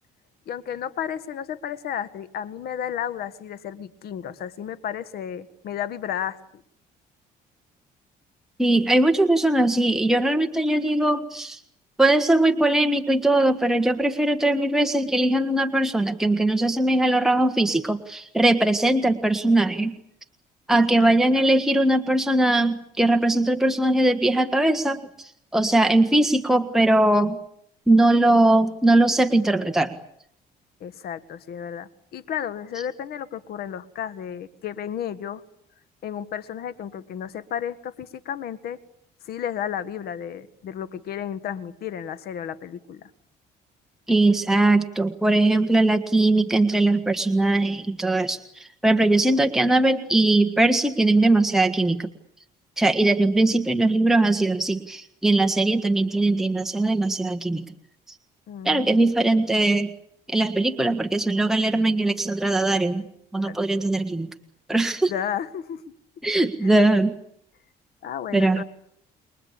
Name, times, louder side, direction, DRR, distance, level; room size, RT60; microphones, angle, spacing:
voice 1, 0.5-6.6 20.7-21.5 30.8-35.4 36.0-38.8 39.2-43.1 58.5-59.1 63.4-63.6 65.1-65.8 66.6-66.8 68.0-68.6, left 9 dB, 65° left, 15 dB, 1.7 m, -33 dB
voice 2, 8.6-11.6 12.0-19.9 20.7-25.0 25.5-27.4 27.9-29.9 44.1-48.4 48.8-52.1 52.8-57.6 58.6-59.9 60.3-63.0 63.3-64.3 64.7-65.1 66.2-67.1 68.3-68.6, right 2 dB, ahead, 6 dB, 1.5 m, -20 dB
29.0 x 22.5 x 8.8 m, 0.69 s
cardioid pair, 110°, 17 cm